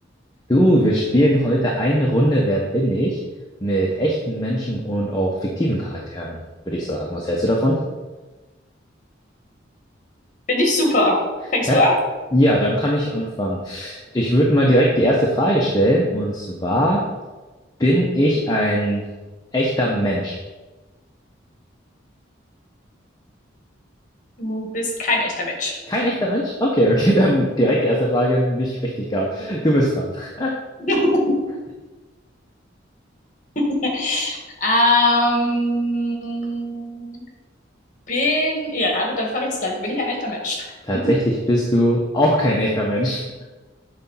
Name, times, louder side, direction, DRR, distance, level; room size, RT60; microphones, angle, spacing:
voice 1, 0.5-3.2 3.6-6.4 6.7-7.8 11.7-11.8 12.3-17.0 17.8-19.0 19.5-20.4 25.9-30.5 40.9-43.2, equal, 20° left, -2 dB, 0.8 m, -20 dB
voice 2, 10.5-11.2 11.5-12.0 24.4-25.8 30.9-31.4 33.5-37.2 38.1-40.7 41.0-41.1, left 1 dB, 40° left, 0 dB, 1.7 m, -21 dB
8.1 x 4.0 x 5.6 m, 1.2 s
head